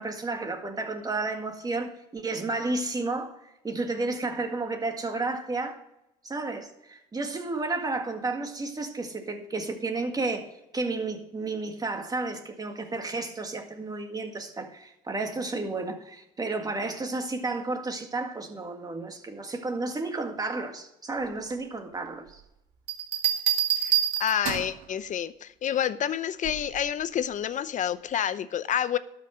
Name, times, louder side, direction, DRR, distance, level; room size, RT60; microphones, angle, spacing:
voice 1, 0.0-3.4 3.6-5.8 6.2-10.5 10.7-22.4, right 3 dB, 20° right, 1.8 m, -32 dB
sound 1, 22.9-24.8 26.4-26.8, right 10 dB, 80° right, 2.2 m, -27 dB
voice 2, 24.2-29.0, left 9 dB, 50° left, 0.7 m, -28 dB
12.0 x 5.8 x 7.7 m
cardioid pair, 110°, 17 cm